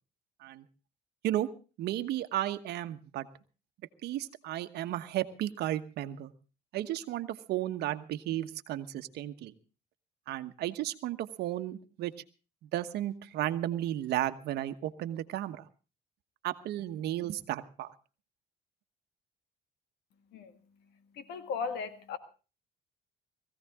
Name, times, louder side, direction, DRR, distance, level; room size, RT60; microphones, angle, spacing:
voice 1, 1.8-3.3 4.0-6.3 6.7-9.5 10.3-12.1 12.6-15.6 16.4-17.9, right 13 dB, 75° right, 10 dB, 1.2 m, -34 dB
voice 2, 21.1-22.2, left 5 dB, 80° left, 9 dB, 2.0 m, -36 dB
20.0 x 15.5 x 3.6 m, 0.35 s
cardioid pair, 110°, 17 cm